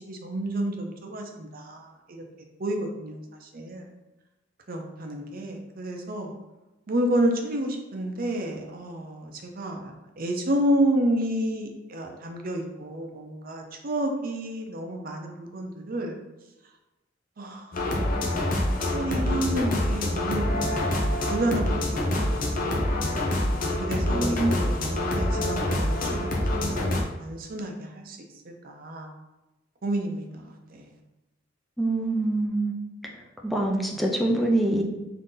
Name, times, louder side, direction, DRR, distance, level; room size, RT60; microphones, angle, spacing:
voice 1, 0.0-2.2 2.6-3.8 4.7-6.3 6.9-16.2 17.4-17.7 17.9-18.1 18.3-20.9 21.3-22.6 23.8-28.2 28.4-29.1 29.8-30.9, right 1 dB, 45° right, 2 dB, 0.6 m, -30 dB
sound 1, 17.7-27.0, left 1 dB, 45° left, 0.6 m, -26 dB
voice 2, 24.1-24.5 31.8-32.7 33.4-34.8, right 2 dB, ahead, -1 dB, 0.5 m, -24 dB
3.9 x 2.8 x 3.7 m, 1.0 s
head